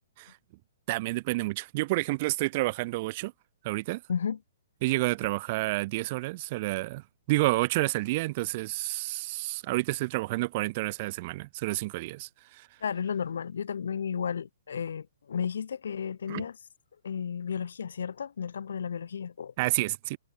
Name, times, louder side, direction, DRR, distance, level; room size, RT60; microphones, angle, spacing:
voice 1, 0.9-3.3 3.6-4.0 4.8-12.7 16.3-16.4 19.6-20.2, right 21 dB, 30° right, 1.4 m, -29 dB
voice 2, 12.8-16.6 17.0-19.5, left 7 dB, 75° left, 1.1 m, -33 dB
hypercardioid pair, 170°, 0 cm